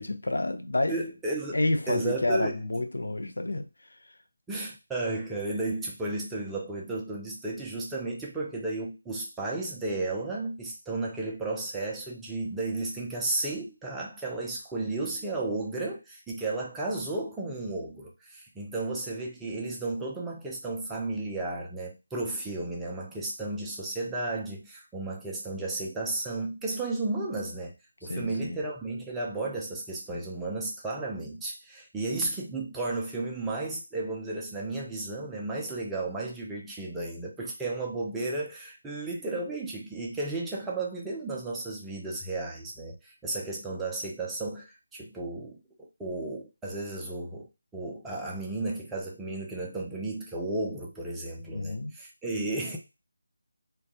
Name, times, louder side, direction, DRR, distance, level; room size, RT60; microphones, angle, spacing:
voice 1, 0.0-1.0 1.5-4.1 28.1-28.6 51.5-51.9, left 2 dB, 85° left, 0.5 m, -29 dB
voice 2, 0.9-1.6 1.9-2.6 4.5-27.7 28.0-45.6 46.0-47.5 47.7-52.8, right 2 dB, 5° right, 0.3 m, -33 dB
2.2 x 2.0 x 2.7 m
figure-of-eight pair, 165°, 0 cm